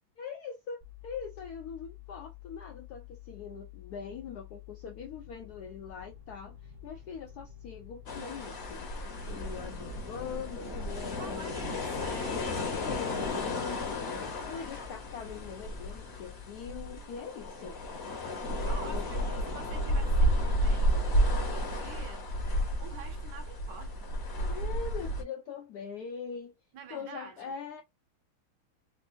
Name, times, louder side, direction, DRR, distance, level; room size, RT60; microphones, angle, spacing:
voice 1, 0.2-11.6 12.8-17.8 18.9-19.1 24.5-26.5 26.9-27.8, left 6 dB, 75° left, 0.9 m, -42 dB
sound 1, 0.8-17.0, left 10 dB, 40° right, 0.8 m, -50 dB
sound 2, 8.1-25.2, equal, 45° left, 0.8 m, -32 dB
voice 2, 11.2-12.7 18.6-20.9 21.3-22.3 22.8-24.1 26.7-27.5, right 5 dB, 70° right, 1.2 m, -48 dB
3.6 x 2.5 x 2.5 m
omnidirectional pair, 2.2 m